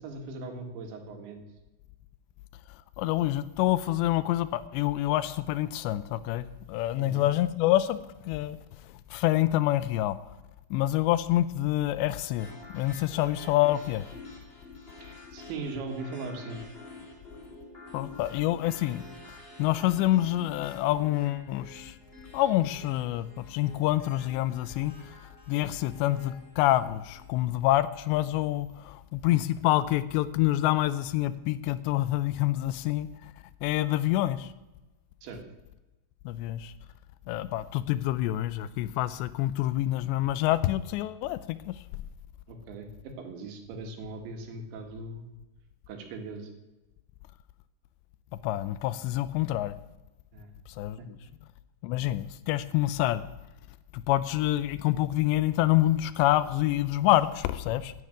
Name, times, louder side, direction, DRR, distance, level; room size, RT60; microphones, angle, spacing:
voice 1, 0.0-1.4 7.0-7.3 15.3-16.6 35.2-35.4 42.5-45.3 45.9-46.5 50.3-50.5 51.0-51.1, right 3 dB, 85° right, 5 dB, 4.2 m, -39 dB
voice 2, 2.7-8.0 8.2-8.6 8.9-10.2 10.7-12.5 12.7-14.1 17.9-19.0 19.6-22.0 22.3-25.1 25.5-33.3 33.6-34.5 36.3-36.7 37.3-41.8 48.4-49.8 50.8-51.2 51.8-53.2 53.9-57.9, left 15 dB, 85° left, 15 dB, 2.8 m, -27 dB
sound 1, 12.4-27.4, left 2 dB, 15° left, 2.4 m, -48 dB
10.5 x 9.9 x 8.9 m, 1.0 s
omnidirectional pair, 5.0 m